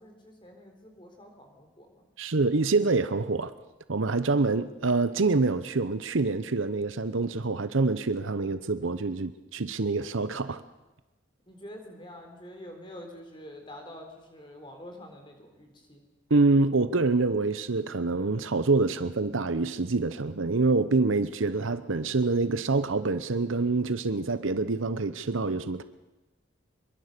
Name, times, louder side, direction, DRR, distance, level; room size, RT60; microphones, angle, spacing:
voice 1, 0.0-2.0 11.5-16.0, left 1 dB, 25° left, 4 dB, 4.0 m, -46 dB
voice 2, 2.2-3.5 3.9-10.6 16.3-25.8, right 3 dB, 80° right, 12 dB, 0.9 m, -26 dB
24.0 x 22.5 x 6.8 m, 1.1 s
head